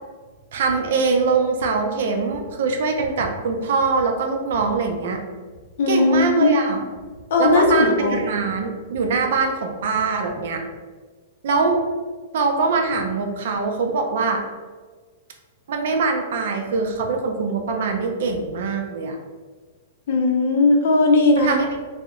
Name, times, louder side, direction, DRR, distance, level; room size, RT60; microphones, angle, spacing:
voice 1, 0.5-5.2 5.9-6.8 7.4-10.7 11.4-11.8 12.3-14.4 15.7-19.2 21.4-21.8, right 4 dB, 55° right, 3 dB, 0.4 m, -23 dB
voice 2, 5.8-6.6 7.3-8.3 20.1-21.5, left 2 dB, 55° left, 2 dB, 0.5 m, -18 dB
2.8 x 2.0 x 3.6 m, 1.4 s
supercardioid pair, 175°, 0 cm